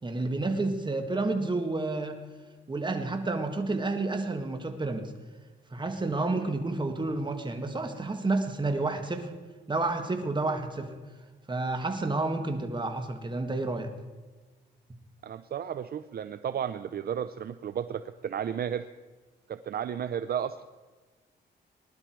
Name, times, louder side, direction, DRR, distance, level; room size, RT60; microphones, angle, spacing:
voice 1, 0.0-2.2 2.7-5.1 5.7-9.3 9.7-10.9 11.5-13.9, right 2 dB, 25° right, 5 dB, 1.8 m, -30 dB
voice 2, 15.2-18.9 19.5-20.6, right 8 dB, 55° right, 12 dB, 0.5 m, -33 dB
20.0 x 11.5 x 4.6 m, 1.3 s
cardioid pair, 95°, 19 cm